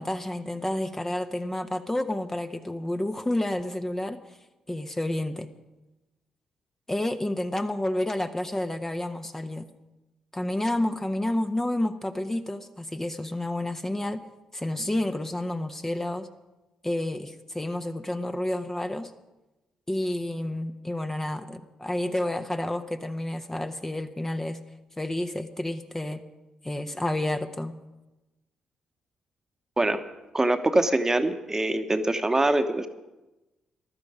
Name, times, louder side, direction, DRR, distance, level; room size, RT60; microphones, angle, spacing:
voice 1, 0.0-4.2 4.7-5.5 6.9-9.7 10.3-14.2 14.5-16.3 16.8-19.1 19.9-24.6 25.0-26.2 26.6-27.7, left 1 dB, 15° left, 7 dB, 0.9 m, -30 dB
voice 2, 30.3-32.9, right 2 dB, 20° right, 8 dB, 1.1 m, -24 dB
15.0 x 11.5 x 5.0 m, 1.0 s
hypercardioid pair, 40°, 2 cm